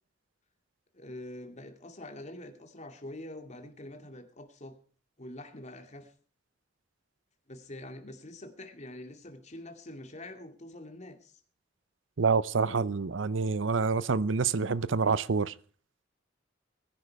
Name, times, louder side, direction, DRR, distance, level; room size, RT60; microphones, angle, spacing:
voice 1, 0.9-4.8 5.2-6.1 7.5-11.4, left 1 dB, 40° left, 2.5 m, -45 dB
voice 2, 12.2-15.5, right 4 dB, 85° right, 0.7 m, -27 dB
21.0 x 11.0 x 4.7 m
head